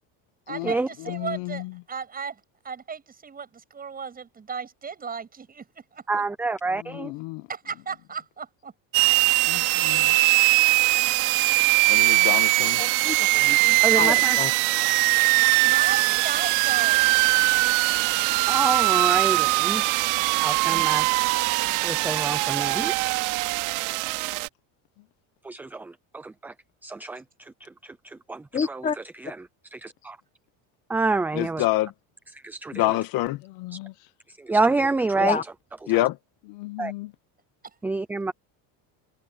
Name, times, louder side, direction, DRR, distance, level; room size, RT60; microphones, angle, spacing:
voice 1, 0.5-6.0 7.5-8.7 15.4-17.1 37.6-37.8, right 6 dB, 20° right, 8.0 m, -36 dB
voice 2, 1.0-1.7 6.9-7.5 9.4-10.2 20.7-20.8 33.4-33.9 36.5-37.1, left 21 dB, 70° left, 1.3 m, -36 dB
voice 3, 6.1-7.1 13.8-14.4 18.5-19.8 20.4-21.1 21.8-23.0 25.4-26.5 26.8-30.2 30.9-31.7 32.3-33.0 33.7-33.8 34.3-35.4 36.8-36.9 37.8-38.3, right 3 dB, 5° right, 0.3 m, -28 dB
sound 1, 8.9-24.5, right 24 dB, 75° right, 3.2 m, -21 dB
voice 4, 11.9-12.8 31.4-31.9 32.7-33.4 35.9-36.1, left 16 dB, 50° left, 2.2 m, -25 dB
voice 5, 12.8-14.5 28.5-29.0 35.2-35.4, left 7 dB, 15° left, 1.1 m, -29 dB
cardioid pair, 155°, 43 cm